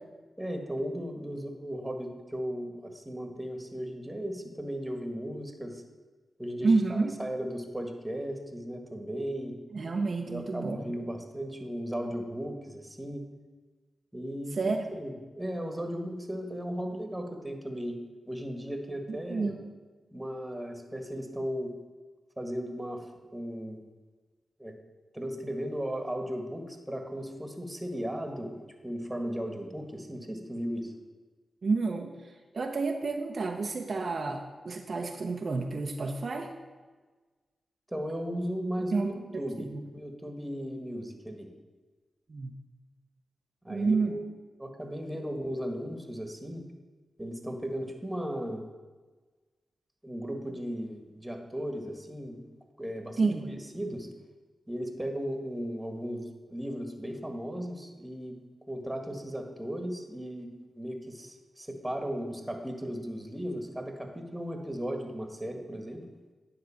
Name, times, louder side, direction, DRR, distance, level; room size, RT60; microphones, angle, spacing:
voice 1, 0.4-5.8 6.4-9.6 10.2-13.3 14.1-19.5 20.1-21.7 22.4-23.0 23.3-23.8 24.6-24.7 25.1-30.9 37.9-41.5 43.6-44.2 44.6-46.7 47.2-48.6 50.0-52.4 52.8-54.1 54.7-58.4 58.7-66.0, equal, 10° right, 4 dB, 1.5 m, -36 dB
voice 2, 6.6-7.1 9.7-10.8 14.6-14.8 19.1-19.6 31.6-32.1 32.5-36.5 38.9-39.8 42.3-42.5 43.7-44.2 53.2-53.5, right 4 dB, 60° right, 3 dB, 0.7 m, -29 dB
9.6 x 3.9 x 7.0 m, 1.3 s
cardioid pair, 45°, 0 cm